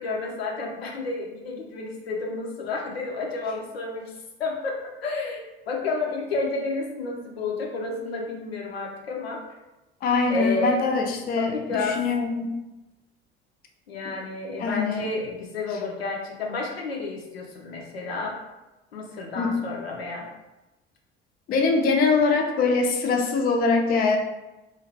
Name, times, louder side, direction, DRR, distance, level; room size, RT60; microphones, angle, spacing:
voice 1, 0.0-4.1 4.4-9.4 10.3-10.9 11.4-12.0 13.9-18.4 18.9-20.3, left 3 dB, 80° left, -1 dB, 0.5 m, -31 dB
voice 2, 10.0-12.6 14.0-14.1 14.6-15.1 19.4-19.5 21.5-24.2, left 4 dB, 30° left, 3 dB, 0.4 m, -23 dB
2.5 x 2.4 x 3.1 m, 1.0 s
figure-of-eight pair, 60°, 30 cm